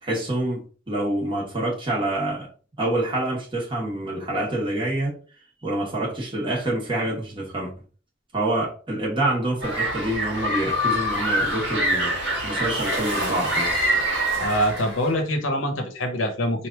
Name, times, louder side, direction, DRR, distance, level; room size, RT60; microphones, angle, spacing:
voice 1, 0.0-2.5 2.8-5.2 5.6-7.7 8.3-12.1 12.4-13.8, right 1 dB, 25° right, 1.3 m, -26 dB
sound 1, 9.6-15.1, equal, 60° right, 1.4 m, -25 dB
voice 2, 14.3-16.7, equal, 80° left, 1.0 m, -24 dB
3.2 x 2.6 x 4.5 m
head